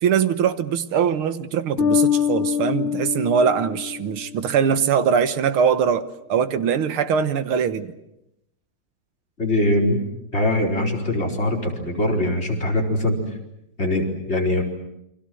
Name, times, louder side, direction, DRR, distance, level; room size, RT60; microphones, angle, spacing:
voice 1, 0.0-6.0 6.3-7.9, right 7 dB, 85° right, 12 dB, 2.1 m, -21 dB
Bass guitar, 1.8-4.4, left 8 dB, 85° left, 2.5 m, -24 dB
voice 2, 9.4-10.0 10.3-13.2 13.8-14.6, left 1 dB, 30° left, 0 dB, 4.8 m, -22 dB
29.0 x 24.0 x 7.8 m, 0.85 s
omnidirectional pair, 2.3 m